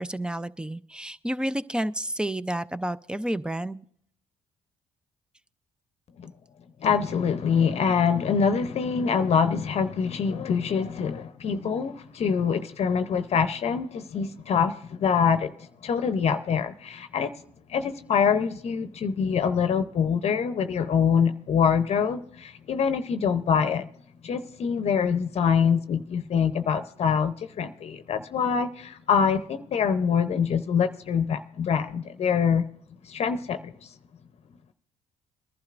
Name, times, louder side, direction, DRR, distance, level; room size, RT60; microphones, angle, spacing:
voice 1, 0.0-3.8, right 1 dB, 5° right, 0.5 m, -30 dB
voice 2, 6.8-17.3 17.7-23.9 24.2-32.7 33.0-33.9, left 6 dB, 55° left, 0.7 m, -25 dB
22.0 x 11.5 x 2.5 m
supercardioid pair, 70°, 13 cm